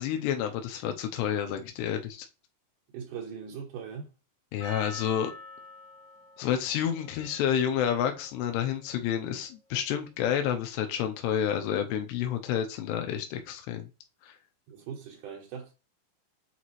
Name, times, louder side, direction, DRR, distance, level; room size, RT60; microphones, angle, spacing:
voice 1, 0.0-2.3 4.5-5.3 6.4-13.9 14.3-14.4, left 9 dB, 85° left, 3.0 m, -29 dB
voice 2, 2.9-4.1 14.7-15.7, right 7 dB, 75° right, 1.9 m, -40 dB
Percussion, 4.6-9.2, left 2 dB, 60° left, 0.8 m, -47 dB
8.2 x 4.2 x 3.1 m
omnidirectional pair, 4.8 m